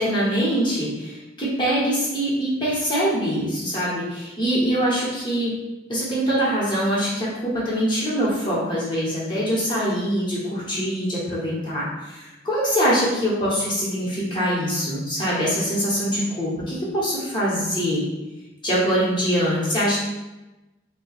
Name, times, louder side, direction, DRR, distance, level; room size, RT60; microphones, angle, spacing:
voice 1, 0.0-5.5 5.9-18.0 18.6-20.0, equal, 25° left, -8 dB, 1.4 m, -23 dB
3.7 x 2.4 x 4.1 m, 1.0 s
head